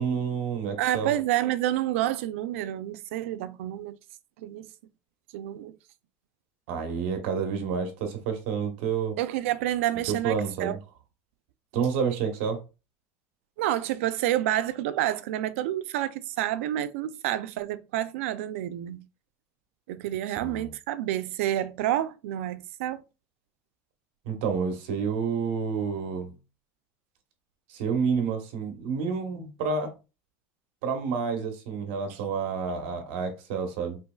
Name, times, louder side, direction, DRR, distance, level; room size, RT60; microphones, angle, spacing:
voice 1, 0.0-1.1 6.7-9.2 10.1-10.8 11.7-12.6 20.4-20.7 24.2-26.3 27.7-29.9 30.8-34.0, right 6 dB, 65° right, 1.0 m, -29 dB
voice 2, 0.8-4.0 4.4-4.7 5.3-5.8 9.2-10.8 13.6-19.0 19.9-23.0, right 13 dB, 90° right, 0.4 m, -29 dB
4.4 x 3.0 x 2.2 m
cardioid pair, 170°, 7 cm